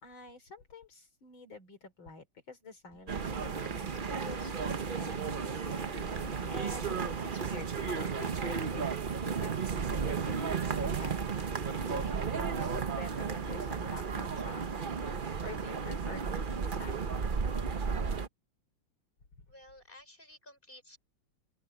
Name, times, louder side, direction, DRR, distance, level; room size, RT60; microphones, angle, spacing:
voice 1, 0.0-7.0 7.2-11.4 11.8-14.7 15.0-17.2, left 2 dB, 60° left, 4.1 m, -48 dB
sound 1, 2.9-7.6, left 7 dB, 40° left, 1.6 m, -52 dB
sound 2, 3.1-18.3, right 5 dB, 80° right, 0.4 m, -34 dB
voice 2, 19.5-21.0, left 1 dB, 20° left, 5.0 m, -54 dB
open air
omnidirectional pair, 2.4 m